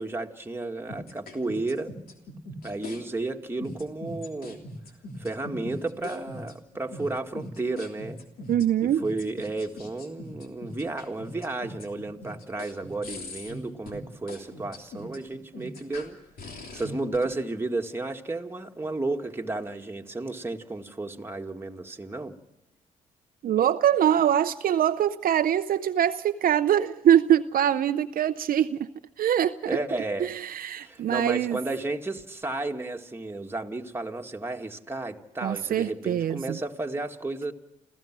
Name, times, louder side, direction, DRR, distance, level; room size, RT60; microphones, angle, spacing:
voice 1, 0.0-2.0 2.6-4.6 5.2-8.2 8.8-16.2 16.5-22.4 29.7-30.3 30.8-37.5, right 2 dB, 15° right, 2.0 m, -33 dB
sound 1, 0.9-3.0 3.6-17.3, left 1 dB, 65° left, 3.2 m, -41 dB
voice 2, 8.5-9.0 23.4-28.9 29.2-29.8 30.2-31.6 35.4-36.6, right 10 dB, 60° right, 0.6 m, -23 dB
28.5 x 15.5 x 6.1 m
supercardioid pair, 50°, 16 cm